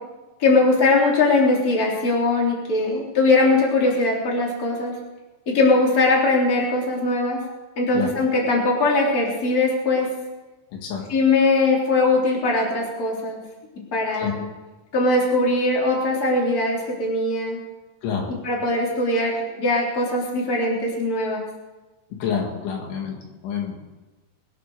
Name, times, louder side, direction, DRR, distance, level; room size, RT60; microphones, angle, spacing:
voice 1, 0.4-4.9 5.5-7.4 7.8-10.1 11.1-13.4 13.9-14.4 14.9-17.6 18.4-21.4, left 2 dB, 20° left, -2 dB, 3.3 m, -20 dB
voice 2, 10.7-11.1 14.1-14.3 18.0-18.3 22.1-23.7, left 7 dB, 75° left, 1 dB, 4.3 m, -28 dB
23.0 x 8.5 x 6.6 m, 1.2 s
omnidirectional pair, 5.6 m